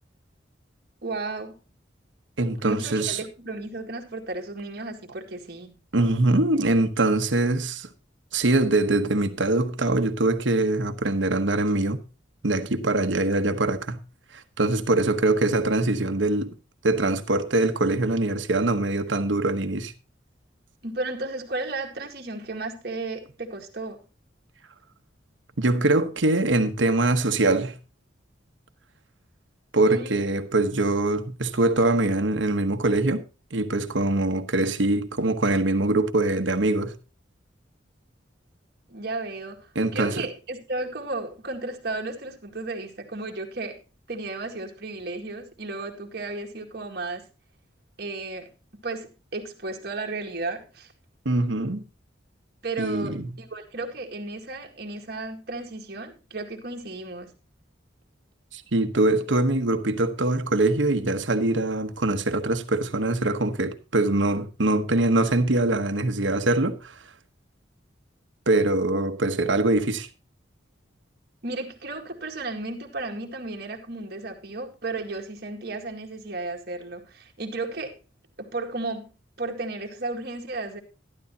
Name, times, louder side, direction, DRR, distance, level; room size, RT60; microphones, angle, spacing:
voice 1, 1.0-1.6 2.6-5.7 20.8-24.0 29.9-30.2 38.9-43.8 44.1-47.2 48.0-48.5 48.8-50.9 52.6-57.3 71.4-78.0 78.4-80.8, right 2 dB, 55° right, 2.1 m, -34 dB
voice 2, 2.4-3.2 5.9-7.9 8.3-12.0 12.4-14.0 14.3-16.5 16.8-19.9 25.6-27.8 29.7-33.2 33.5-36.9 39.7-40.3 51.2-51.8 52.8-53.3 58.5-67.0 68.5-70.1, right 2 dB, 85° right, 1.1 m, -23 dB
12.0 x 12.0 x 2.8 m
head